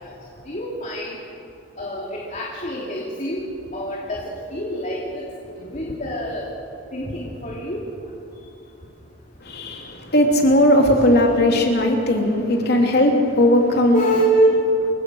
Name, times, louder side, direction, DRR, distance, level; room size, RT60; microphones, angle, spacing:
voice 1, 0.5-1.2 1.8-3.5 3.7-4.2 4.5-5.2 5.6-6.4 6.9-7.8 13.9-14.6, right 1 dB, 40° left, -3 dB, 2.9 m, -24 dB
voice 2, 9.4-14.0, left 1 dB, 55° left, 2 dB, 3.2 m, -17 dB
28.5 x 16.0 x 6.4 m, 2.7 s
head